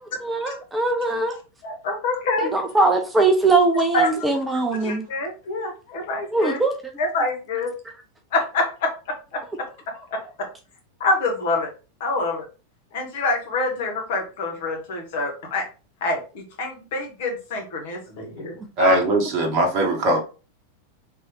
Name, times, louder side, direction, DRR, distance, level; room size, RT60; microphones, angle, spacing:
voice 1, 0.2-1.3 2.4-5.1 6.3-6.7, right 3 dB, 10° right, 4 dB, 0.6 m, -21 dB
voice 2, 1.6-2.5 3.9-4.2 4.8-6.6 7.0-7.7 8.3-8.9 9.3-9.4 10.1-10.2 11.0-11.7 12.0-12.5 12.9-15.6 16.0-18.5 18.8-19.0, left 2 dB, 55° left, 2 dB, 1.2 m, -26 dB
voice 3, 18.8-20.2, right 1 dB, 40° right, 2 dB, 0.9 m, -20 dB
3.5 x 3.1 x 2.9 m, 0.34 s
figure-of-eight pair, 90°, 0 cm